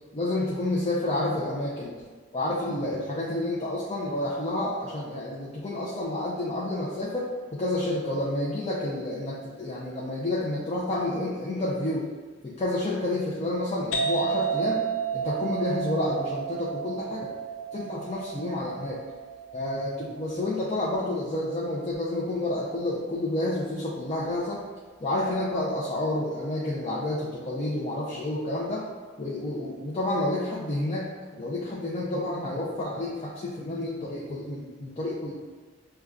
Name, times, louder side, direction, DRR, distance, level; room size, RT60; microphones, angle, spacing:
voice 1, 0.1-2.0 2.3-12.1 12.4-14.8 15.1-17.3 17.7-19.0 19.5-24.6 25.0-28.8 29.2-35.3, left 1 dB, 30° left, -6 dB, 0.5 m, -29 dB
sound 1, 13.9-21.4, right 6 dB, 85° left, 0.6 m, -32 dB
6.4 x 2.2 x 2.4 m, 1.5 s
head